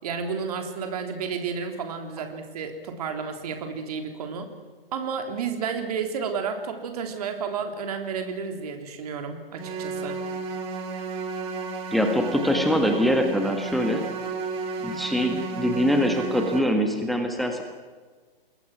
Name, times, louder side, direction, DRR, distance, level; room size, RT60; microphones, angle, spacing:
voice 1, 0.0-4.5 4.9-10.2, right 6 dB, 40° right, 5 dB, 3.5 m, -31 dB
sound 1, 9.6-16.6, right 4 dB, 20° right, 2.7 m, -33 dB
voice 2, 11.9-14.0 14.8-17.6, equal, ahead, 5 dB, 1.6 m, -23 dB
28.0 x 22.0 x 6.2 m, 1.4 s
figure-of-eight pair, 130°, 29 cm